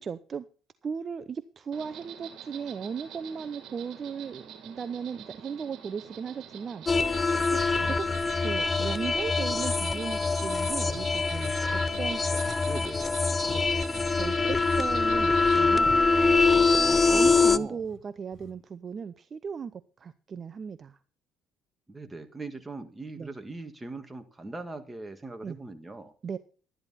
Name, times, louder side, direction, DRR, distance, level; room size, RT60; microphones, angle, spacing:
voice 1, 0.0-0.5 0.8-6.9 7.5-8.1 8.4-12.2 13.4-13.6 14.1-16.0 16.9-21.0 23.2-23.3 25.4-25.6 26.2-26.4, right 6 dB, 40° right, 13 dB, 0.7 m, -37 dB
Insect, 1.7-15.6, right 9 dB, 65° right, 2.5 m, -46 dB
sound 1, 6.4-6.5 7.1-7.3 10.9-12.1 12.4-12.6 12.9-17.0 17.3-17.5 17.8-18.0 18.3-18.5, left 3 dB, 55° left, 2.5 m, -48 dB
sound 2, 6.9-17.6, left 4 dB, 25° left, 0.7 m, -24 dB
voice 2, 12.7-13.2 17.5-17.8 21.9-26.1, right 3 dB, 15° right, 7 dB, 2.0 m, -40 dB
12.5 x 10.5 x 4.2 m, 0.39 s
cardioid pair, 90°, 0 cm